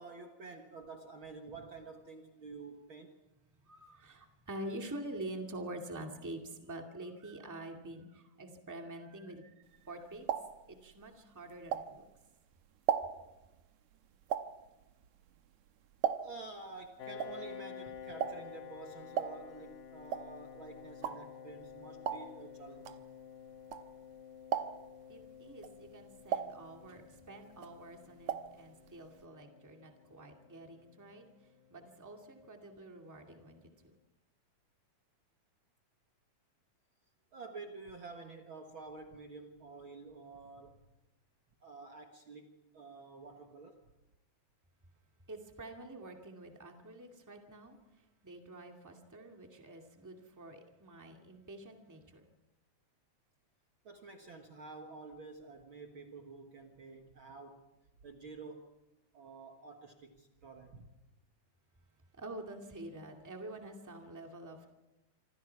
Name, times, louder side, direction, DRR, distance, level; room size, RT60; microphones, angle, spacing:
voice 1, 0.0-3.2 16.2-23.0 37.3-40.8 41.6-43.8 53.8-57.6 58.0-58.7 59.1-60.9, right 3 dB, 50° right, 3 dB, 1.9 m, -49 dB
voice 2, 3.7-9.5 9.8-10.2 10.7-12.0 25.1-31.2 31.7-33.6 45.3-47.8 48.2-52.2 62.2-64.7, right 1 dB, 5° right, 2 dB, 1.9 m, -47 dB
sound 1, 9.7-12.3 12.6-16.6 16.8-24.1 24.4-25.0 25.5-27.2 27.5-28.6 28.8-28.9 29.2-29.3, right 9 dB, 75° right, 2.2 m, -38 dB
Piano, 17.0-32.3, left 8 dB, 80° left, 2.5 m, -51 dB
26.5 x 26.0 x 4.7 m, 1.0 s
omnidirectional pair, 3.5 m